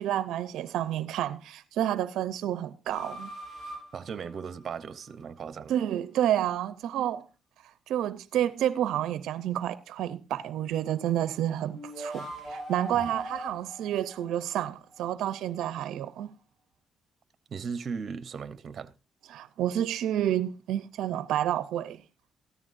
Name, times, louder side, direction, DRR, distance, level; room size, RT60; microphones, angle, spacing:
voice 1, 0.0-3.3 5.7-7.3 7.6-16.3 19.3-22.0, right 11 dB, 80° right, 0.6 m, -30 dB
sound 1, 2.9-5.2 11.7-15.1, right 1 dB, 45° left, 6.3 m, -41 dB
voice 2, 3.9-5.7 12.9-13.1 17.5-18.9, right 6 dB, 50° right, 0.9 m, -37 dB
14.0 x 13.5 x 2.5 m
cardioid pair, 90°, 0 cm